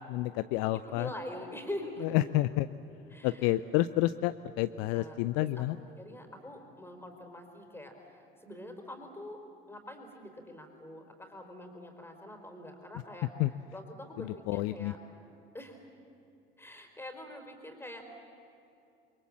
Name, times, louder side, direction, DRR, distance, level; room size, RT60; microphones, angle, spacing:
voice 1, 0.1-1.1 2.1-2.7 3.2-5.8 13.4-13.5 14.2-14.9, left 16 dB, 55° left, 13 dB, 0.6 m, -29 dB
voice 2, 0.7-2.3 3.1-3.6 4.9-5.7 6.0-13.4 13.7-15.0 15.5-15.8 16.6-18.1, left 1 dB, 10° left, 4 dB, 4.4 m, -44 dB
29.0 x 22.5 x 7.5 m, 2.8 s
figure-of-eight pair, 65°, 30 cm